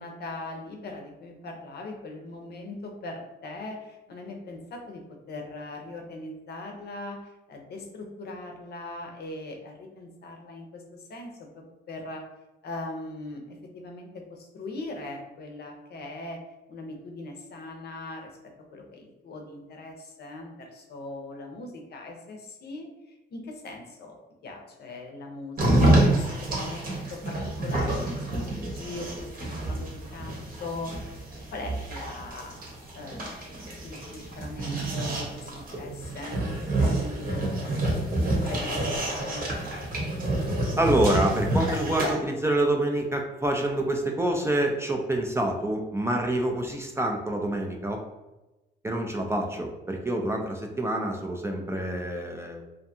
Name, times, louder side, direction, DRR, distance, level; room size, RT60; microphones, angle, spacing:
voice 1, 0.0-12.3 12.6-16.4 16.7-18.3 18.7-22.9 23.3-24.2 24.4-32.6 32.9-33.6 33.8-37.7 38.2-39.5, left 2 dB, 55° left, 2 dB, 0.6 m, -40 dB
sound 1, 25.6-42.1, right 1 dB, 45° right, 0.9 m, -28 dB
voice 2, 40.8-48.0 48.8-52.6, right 1 dB, 15° right, 1 dB, 0.3 m, -27 dB
2.6 x 2.2 x 2.6 m, 1.0 s
cardioid pair, 90°, 20 cm